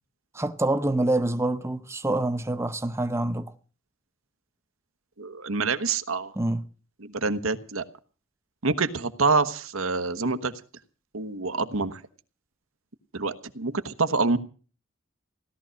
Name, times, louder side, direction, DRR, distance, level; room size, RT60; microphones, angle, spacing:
voice 1, 0.3-3.5 6.4-6.6, right 2 dB, 15° right, 0.8 m, -26 dB
voice 2, 5.2-6.3 7.0-7.8 8.6-10.5 11.1-12.0 13.1-14.4, right 3 dB, 80° right, 1.3 m, -26 dB
17.0 x 12.5 x 6.5 m
head